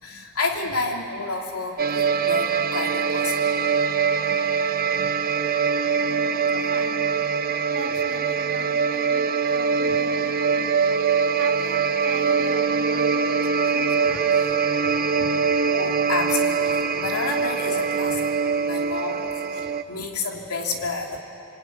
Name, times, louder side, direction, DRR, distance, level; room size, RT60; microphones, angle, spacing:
voice 1, 0.0-3.5 9.8-9.9 14.0-14.2 14.8-15.2 15.7-21.2, left 3 dB, 85° left, 1 dB, 3.0 m, -30 dB
sound 1, 1.8-19.8, right 5 dB, 45° right, 0.8 m, -23 dB
voice 2, 4.3-7.2 7.7-10.9 11.3-13.4 13.7-14.6 15.2-15.4 18.4-18.7, right 2 dB, 70° right, 3 dB, 2.3 m, -42 dB
26.0 x 24.0 x 9.5 m, 2.8 s
head